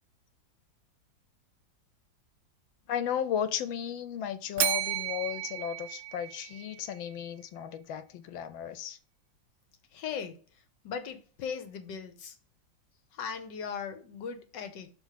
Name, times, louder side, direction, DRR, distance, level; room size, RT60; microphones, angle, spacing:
voice 1, 2.9-9.0, left 9 dB, 85° left, 1.5 m, -34 dB
Bell, 4.6-6.8, right 11 dB, 80° right, 1.4 m, -33 dB
voice 2, 9.9-10.4 10.8-12.4 13.1-14.9, left 6 dB, 70° left, 1.5 m, -38 dB
6.1 x 3.6 x 5.6 m
omnidirectional pair, 2.1 m